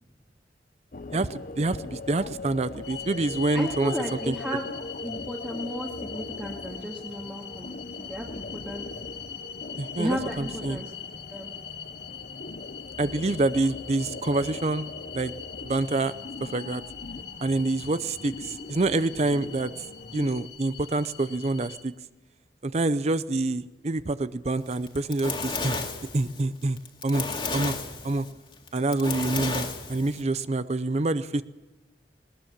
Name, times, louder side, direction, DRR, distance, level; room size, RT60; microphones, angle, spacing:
sound 1, 0.9-20.5, left 2 dB, 50° left, 0.8 m, -40 dB
voice 1, 1.1-4.3 9.8-10.8 13.0-15.3 15.6-16.1 16.4-16.8 17.4-19.7 20.1-21.9 22.6-25.8 26.1-26.8 27.0-27.2 27.5-27.7 28.0-28.3 28.7-31.4, right 2 dB, 40° right, 14 dB, 0.6 m, -27 dB
sound 2, 2.8-21.8, left 8 dB, 80° left, 1.8 m, -42 dB
voice 2, 3.5-4.7 5.0-8.9 9.9-10.9 11.3-11.5, equal, 5° right, -2 dB, 1.9 m, -34 dB
Fire, 24.7-30.2, left 4 dB, 30° left, 2.3 m, -32 dB
20.0 x 19.0 x 7.3 m, 1.1 s
head